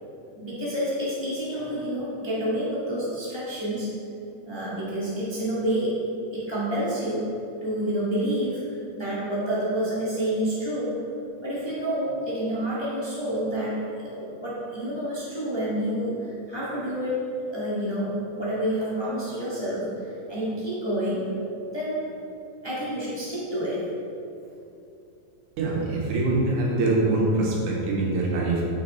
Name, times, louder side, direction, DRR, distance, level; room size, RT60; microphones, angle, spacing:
voice 1, 0.3-3.9 4.4-5.9 6.3-7.3 7.6-10.9 11.4-13.8 14.2-17.2 17.5-19.9 20.3-21.3 21.7-22.1 22.6-23.8, equal, 25° left, -9 dB, 0.6 m, -28 dB
voice 2, 25.6-28.6, right 2 dB, 70° right, -3 dB, 2.6 m, -24 dB
7.1 x 5.9 x 4.3 m, 2.7 s
omnidirectional pair, 3.7 m